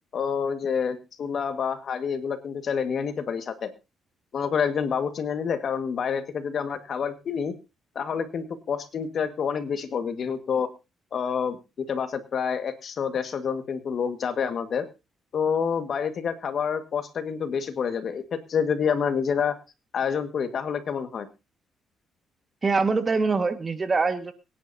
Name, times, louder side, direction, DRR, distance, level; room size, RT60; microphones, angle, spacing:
voice 1, 0.1-3.7 4.3-7.5 7.9-10.7 11.1-14.8 15.3-19.6 19.9-21.3, left 6 dB, 55° left, 9 dB, 1.7 m, -28 dB
voice 2, 22.6-24.3, right 4 dB, 30° right, 9 dB, 1.6 m, -24 dB
23.5 x 10.5 x 2.8 m, 0.28 s
cardioid pair, 90°, 0 cm